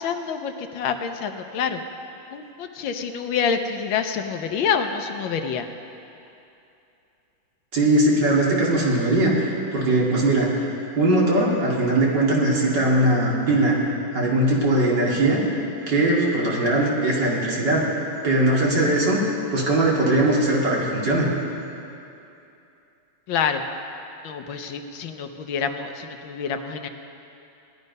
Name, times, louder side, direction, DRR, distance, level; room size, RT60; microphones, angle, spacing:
voice 1, 0.0-1.8 2.3-5.7 23.3-23.6 24.2-26.9, left 6 dB, 75° left, 7 dB, 1.5 m, -27 dB
voice 2, 7.7-10.5 11.0-13.8 14.1-15.4 15.9-17.9 18.2-19.2 19.5-21.3, right 1 dB, 60° right, -4 dB, 3.0 m, -20 dB
17.5 x 11.5 x 5.4 m, 2.7 s
omnidirectional pair, 2.2 m